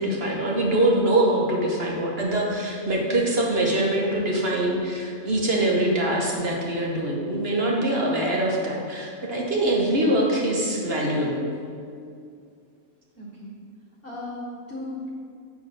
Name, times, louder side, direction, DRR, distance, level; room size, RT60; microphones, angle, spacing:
voice 1, 0.0-11.5, right 1 dB, 45° right, -2 dB, 1.3 m, -23 dB
voice 2, 13.1-13.5 14.0-15.1, left 1 dB, 40° left, -6 dB, 1.7 m, -36 dB
8.7 x 3.4 x 6.2 m, 2.3 s
omnidirectional pair, 1.5 m